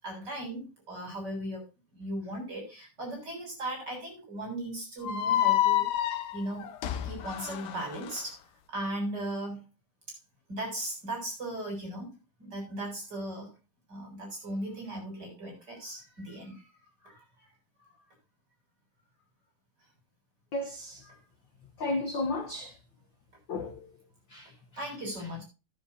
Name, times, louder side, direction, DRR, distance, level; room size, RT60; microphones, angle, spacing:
voice 1, 0.0-1.6 1.9-5.8 6.3-6.7 7.0-8.4 8.7-9.6 10.5-12.1 12.4-13.5 13.9-16.8 17.0-17.5 21.1-21.2 24.8-25.4, right 1 dB, 30° right, 8.0 m, -37 dB
sound 1, 5.0-8.2, left 12 dB, 85° left, 2.8 m, -28 dB
voice 2, 20.5-21.0 21.8-22.7 23.5-23.9 24.3-24.8, left 2 dB, 60° left, 1.3 m, -34 dB
15.5 x 9.9 x 2.8 m
omnidirectional pair, 3.6 m